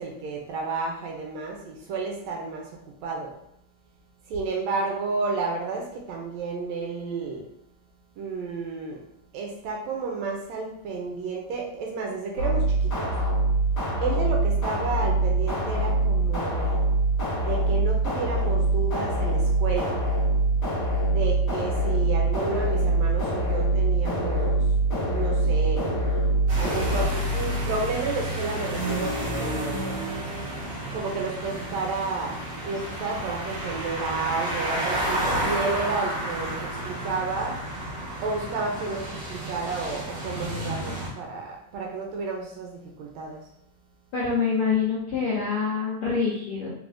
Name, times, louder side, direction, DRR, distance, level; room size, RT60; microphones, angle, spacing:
voice 1, 0.0-3.3 4.3-7.4 8.2-9.0 9.3-13.2 14.0-16.7 17.4-20.0 21.1-24.7 25.1-25.8 26.6-30.0 30.9-37.6 38.2-43.4, right 4 dB, 75° right, 0 dB, 1.8 m, -31 dB
sound 1, 12.4-27.1, right 2 dB, 45° left, 1.4 m, -24 dB
sound 2, 26.5-41.1, right 1 dB, 50° right, 1.4 m, -31 dB
voice 2, 44.1-46.7, left 5 dB, 75° left, -6 dB, 1.3 m, -25 dB
4.2 x 3.7 x 2.4 m, 0.74 s
omnidirectional pair, 3.4 m